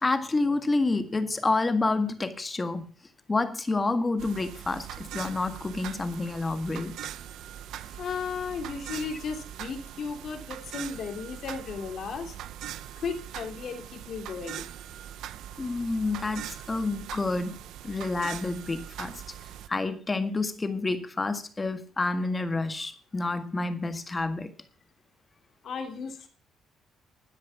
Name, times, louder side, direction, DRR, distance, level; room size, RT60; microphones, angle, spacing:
voice 1, 0.0-2.9 3.3-7.1 15.6-19.2 19.7-24.5, left 3 dB, 20° left, 9 dB, 1.7 m, -29 dB
sound 1, 4.2-19.7, right 11 dB, 80° right, 0.8 m, -42 dB
voice 2, 8.0-12.4 12.9-14.7 25.6-26.3, left 5 dB, 55° left, 5 dB, 3.1 m, -35 dB
12.5 x 9.9 x 5.9 m, 0.40 s
cardioid pair, 115°, 0 cm